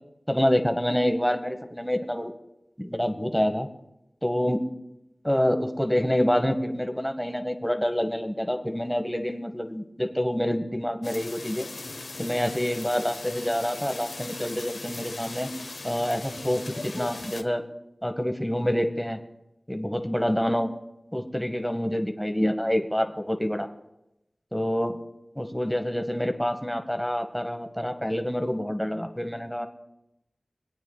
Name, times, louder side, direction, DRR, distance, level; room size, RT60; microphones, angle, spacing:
voice 1, 0.3-2.3 2.8-3.7 4.2-4.6 5.2-11.6 12.2-15.5 15.8-17.6 18.0-19.2 19.7-20.7 21.1-23.7 24.5-25.0 25.4-29.7, equal, 5° left, 7 dB, 1.0 m, -27 dB
sound 1, 11.0-17.4, left 3 dB, 80° left, 0.7 m, -39 dB
25.0 x 9.2 x 2.2 m, 0.88 s
wide cardioid pair, 70°, 0 cm